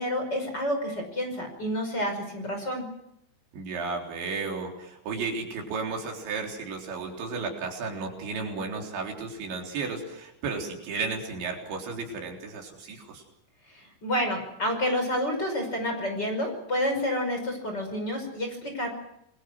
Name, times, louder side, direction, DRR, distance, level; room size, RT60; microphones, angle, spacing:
voice 1, 0.0-2.8 13.7-18.9, equal, 20° left, 4 dB, 5.7 m, -29 dB
voice 2, 3.5-13.2, right 4 dB, 75° right, 1 dB, 6.1 m, -33 dB
28.0 x 22.0 x 6.2 m, 0.79 s
omnidirectional pair, 5.2 m